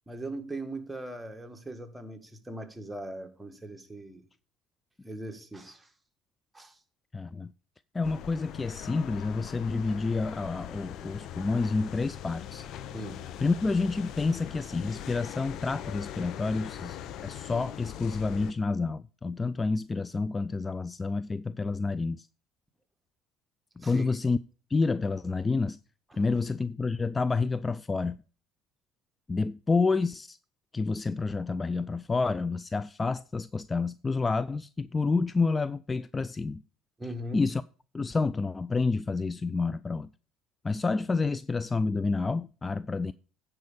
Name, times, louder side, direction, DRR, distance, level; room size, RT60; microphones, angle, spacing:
voice 1, 0.1-4.2 5.0-5.9 6.5-6.8 12.9-13.3 23.8-24.1 26.1-26.2 37.0-37.5, right 1 dB, 10° right, 1.7 m, -40 dB
voice 2, 7.1-7.5 7.9-12.6 13.4-22.3 23.8-24.4 24.7-25.8 26.2-28.2 29.3-30.4 30.7-36.6 37.3-37.6 37.9-40.1 40.6-43.1, left 4 dB, 25° left, 0.3 m, -29 dB
sound 1, 8.0-18.5, left 10 dB, 60° left, 0.8 m, -41 dB
9.4 x 4.8 x 6.8 m
hypercardioid pair, 70°, 0 cm